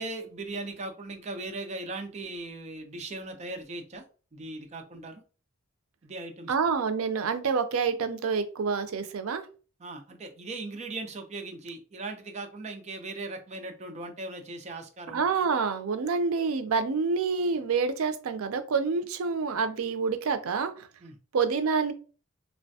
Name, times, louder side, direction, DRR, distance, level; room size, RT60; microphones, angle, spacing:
voice 1, 0.0-4.0 4.3-5.2 6.0-6.5 9.8-15.2 21.0-21.2, right 2 dB, 35° right, 5 dB, 0.5 m, -38 dB
voice 2, 6.5-9.5 15.1-20.9 21.3-21.9, right 5 dB, 85° right, 9 dB, 0.5 m, -27 dB
3.3 x 2.1 x 2.7 m, 0.36 s
head